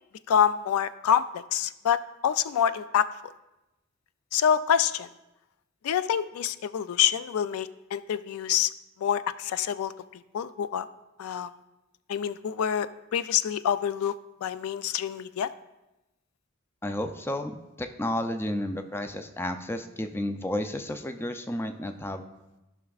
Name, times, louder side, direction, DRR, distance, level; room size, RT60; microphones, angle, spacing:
voice 1, 0.3-3.1 4.3-5.1 5.8-8.7 9.0-10.9 11.2-11.5 12.1-14.1 14.4-15.5, left 8 dB, 90° left, 14 dB, 0.3 m, -26 dB
voice 2, 16.8-22.2, left 1 dB, 10° left, 7 dB, 0.4 m, -32 dB
14.5 x 5.9 x 2.4 m, 0.98 s
head